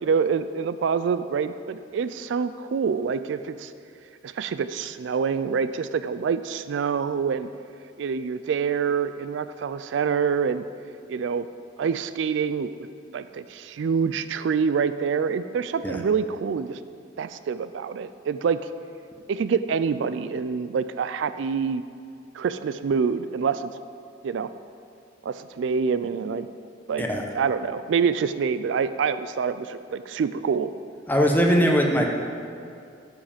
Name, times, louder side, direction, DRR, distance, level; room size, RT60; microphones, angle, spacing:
voice 1, 0.0-3.7 4.2-7.5 8.0-10.6 11.1-11.5 11.8-12.9 13.1-16.8 17.2-18.6 19.3-21.8 22.3-23.7 24.2-24.5 25.2-26.5 26.9-27.1 27.3-30.7, right 6 dB, 70° right, 12 dB, 0.3 m, -26 dB
voice 2, 31.1-32.1, equal, 10° left, 1 dB, 0.9 m, -20 dB
10.5 x 7.6 x 5.1 m, 2.4 s
head